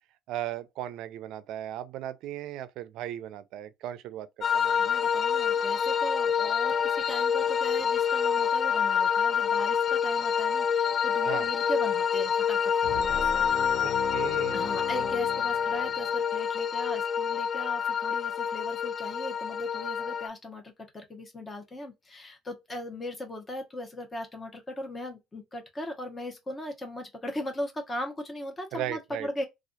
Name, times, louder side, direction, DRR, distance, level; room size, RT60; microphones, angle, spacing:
voice 1, 0.3-4.9 11.3-11.5 13.8-14.8 28.7-29.3, right 12 dB, 70° right, 0.4 m, -37 dB
sound 1, 4.4-20.3, left 7 dB, 45° left, 0.3 m, -27 dB
voice 2, 4.8-13.4 13.7-14.0 14.5-29.4, left 1 dB, 25° left, 0.9 m, -38 dB
sound 2, 12.8-16.2, left 5 dB, 75° left, 0.7 m, -39 dB
2.5 x 2.3 x 2.3 m
supercardioid pair, 80°, 0 cm